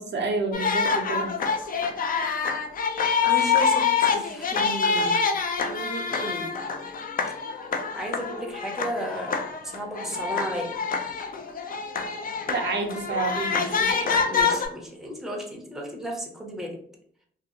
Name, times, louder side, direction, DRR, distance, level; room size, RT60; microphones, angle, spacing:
voice 1, 0.0-1.4 12.5-14.1, right 3 dB, 60° right, 2 dB, 0.5 m, -29 dB
sound 1, 0.5-14.7, left 5 dB, 45° left, 0.4 m, -26 dB
voice 2, 3.3-5.2 5.7-6.5 7.9-9.4 9.6-10.7 14.3-16.7, equal, ahead, 0 dB, 0.6 m, -34 dB
2.6 x 2.3 x 2.7 m, 0.64 s
wide cardioid pair, 110°, 20 cm